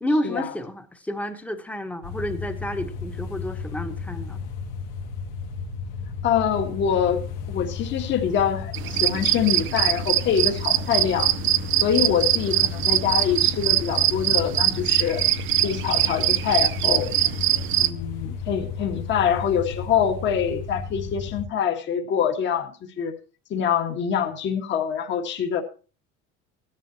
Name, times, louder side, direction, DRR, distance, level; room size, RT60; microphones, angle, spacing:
voice 1, 0.0-4.4, equal, 5° left, 7 dB, 1.3 m, -30 dB
sound 1, 2.0-21.5, left 5 dB, 85° left, 2.2 m, -34 dB
voice 2, 6.2-11.3 11.8-15.2 15.6-17.1 17.8-23.1 23.5-25.6, left 8 dB, 40° left, 4 dB, 1.8 m, -25 dB
sound 2, 8.7-17.9, right 14 dB, 40° right, 0.6 m, -23 dB
15.5 x 10.5 x 2.9 m, 0.35 s
cardioid pair, 160°, 30 cm